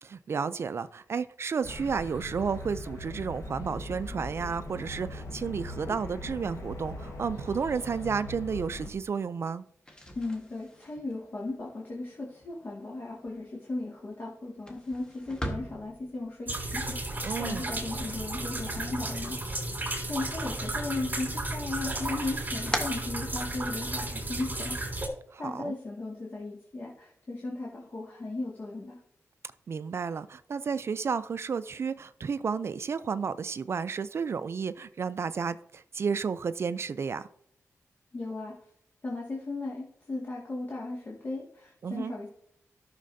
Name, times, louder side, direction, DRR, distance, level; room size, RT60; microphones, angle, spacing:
voice 1, 0.0-9.6 17.2-17.7 25.3-25.8 29.7-37.3 41.8-42.1, right 6 dB, 50° right, 0.3 m, -32 dB
sound 1, 1.6-8.9, left 1 dB, 65° left, 1.3 m, -40 dB
sound 2, 9.7-19.7 20.1-20.9 21.3-23.9, equal, 15° left, 1.3 m, -42 dB
voice 2, 10.2-19.4 20.0-24.8 25.4-29.0 38.1-38.5 39.0-42.3, left 2 dB, 40° left, 1.9 m, -36 dB
sound 3, 16.5-25.1, right 2 dB, 35° right, 3.2 m, -34 dB
13.5 x 6.5 x 2.6 m
wide cardioid pair, 130°, 6 cm